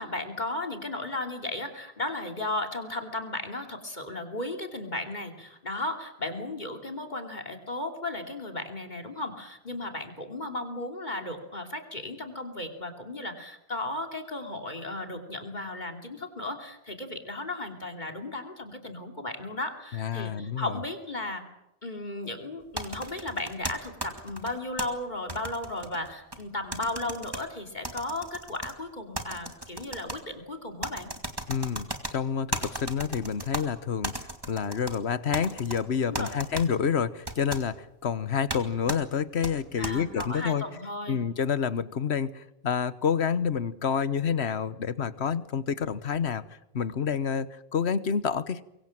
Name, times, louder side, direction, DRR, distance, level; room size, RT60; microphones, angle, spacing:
voice 1, 0.0-21.4 21.8-31.1 36.1-36.4 39.8-41.2, left 2 dB, 45° left, 4 dB, 3.1 m, -35 dB
voice 2, 19.9-20.8 31.5-40.6 41.1-48.6, left 7 dB, 85° left, 15 dB, 1.4 m, -28 dB
sound 1, 22.8-24.9 25.3-26.4 26.7-27.4 27.8-28.7 29.1-30.2 30.8-32.1 32.5-33.6 34.0-35.0 35.3-35.8 36.1-36.7 37.3-37.6 38.5-38.6 38.9-39.0 39.4-40.3, right 1 dB, 20° right, 2.4 m, -35 dB
24.5 x 23.0 x 7.5 m, 0.87 s
omnidirectional pair, 1.1 m